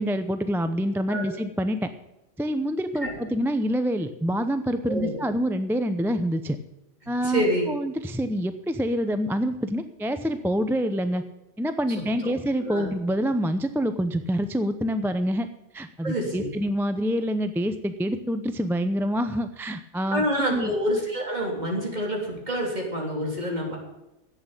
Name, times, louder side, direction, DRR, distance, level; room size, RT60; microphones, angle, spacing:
voice 1, 0.0-1.9 2.4-6.6 7.1-11.2 11.6-15.5 15.7-20.7, equal, 5° right, 9 dB, 0.5 m, -26 dB
voice 2, 7.2-7.7 12.2-12.3 12.6-12.9 16.0-16.5 20.1-23.8, equal, 40° right, -1 dB, 3.6 m, -27 dB
11.5 x 8.5 x 8.9 m, 0.95 s
omnidirectional pair, 1.2 m